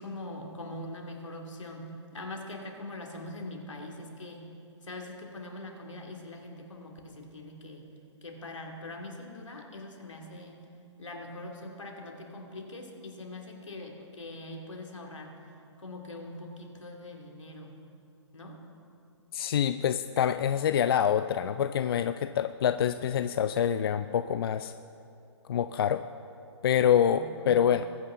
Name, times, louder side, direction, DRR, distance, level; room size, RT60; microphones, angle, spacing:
voice 1, 0.0-4.4 4.8-7.9 8.2-10.6 11.0-15.3 15.8-17.8 18.3-18.6 27.1-27.6, left 1 dB, 90° left, 1 dB, 2.6 m, -42 dB
voice 2, 19.3-24.7 25.5-26.0 26.6-27.9, left 9 dB, 50° left, 11 dB, 0.4 m, -26 dB
21.5 x 9.2 x 3.7 m, 2.6 s
hypercardioid pair, 145°, 15 cm